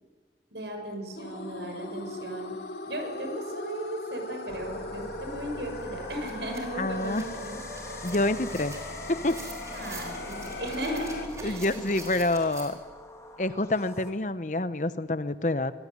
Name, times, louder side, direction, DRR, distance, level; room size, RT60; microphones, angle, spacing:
voice 1, 0.5-2.5 2.9-7.6 9.7-11.7, equal, 80° right, 4 dB, 6.6 m, -36 dB
sound 1, 1.1-11.3, left 2 dB, 70° left, 3.1 m, -39 dB
sound 2, 4.5-14.1, left 1 dB, 15° left, 2.1 m, -43 dB
sound 3, 5.4-5.5 5.8-12.7, right 2 dB, 20° right, 4.5 m, -46 dB
voice 2, 6.8-7.2 8.0-8.7 9.1-9.4 11.4-12.8 13.4-15.7, left 2 dB, 45° left, 13 dB, 1.0 m, -27 dB
24.5 x 18.5 x 9.7 m, 1.3 s
head